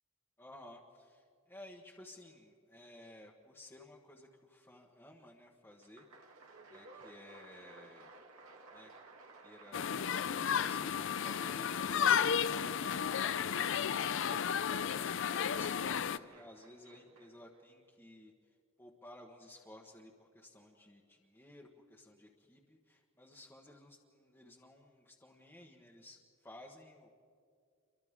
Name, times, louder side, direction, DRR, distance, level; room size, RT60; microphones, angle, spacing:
voice 1, 0.4-6.0 6.7-8.1 8.7-8.9 9.4-9.9 10.5-18.3 18.8-26.2 26.4-27.1, left 1 dB, 10° left, -3 dB, 1.4 m, -56 dB
Applause, 5.7-17.6, right 3 dB, 90° right, 2.8 m, -57 dB
sound 1, 9.7-16.2, left 8 dB, 60° left, 0.5 m, -33 dB
29.5 x 24.5 x 3.7 m, 2.4 s
head